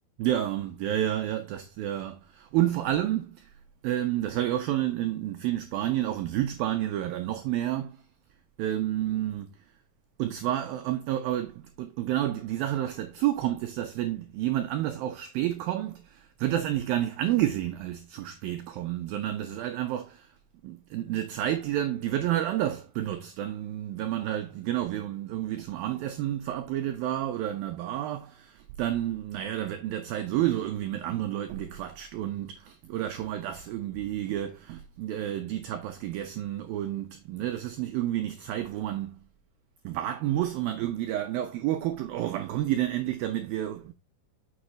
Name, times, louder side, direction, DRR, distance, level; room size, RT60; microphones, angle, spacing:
voice 1, 0.2-3.5 3.8-8.0 8.6-9.5 10.2-20.3 20.6-39.2 39.8-43.9, right 12 dB, 90° right, 2.0 m, -30 dB
7.1 x 6.5 x 3.1 m
omnidirectional pair, 5.1 m